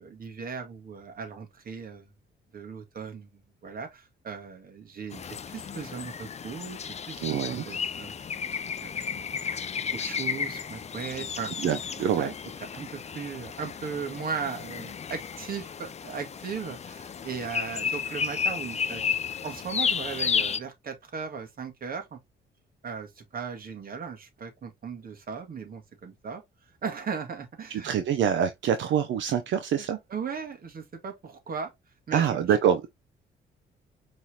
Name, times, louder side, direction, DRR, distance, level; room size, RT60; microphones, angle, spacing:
voice 1, 0.0-2.1 2.5-8.1 8.8-9.2 9.9-11.5 12.0-12.3 12.7-19.0 19.4-22.2 22.8-27.9 29.8-31.7 32.1-32.4, right 6 dB, 50° right, 1.7 m, -37 dB
sound 1, 5.1-20.6, left 6 dB, 35° left, 0.5 m, -33 dB
voice 2, 7.2-7.6 11.6-12.3 27.8-30.0 32.1-32.9, right 8 dB, 70° right, 0.7 m, -25 dB
5.5 x 3.3 x 2.8 m
cardioid pair, 90°, 20 cm